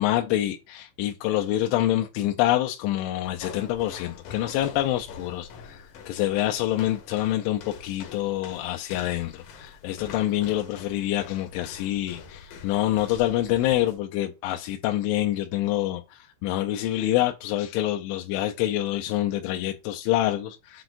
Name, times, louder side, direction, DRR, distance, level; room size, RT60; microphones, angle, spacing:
voice 1, 0.0-20.8, left 14 dB, 85° left, 3.0 m, -26 dB
sound 1, 3.2-14.0, left 6 dB, 65° left, 2.4 m, -45 dB
7.9 x 5.9 x 2.5 m
omnidirectional pair, 5.3 m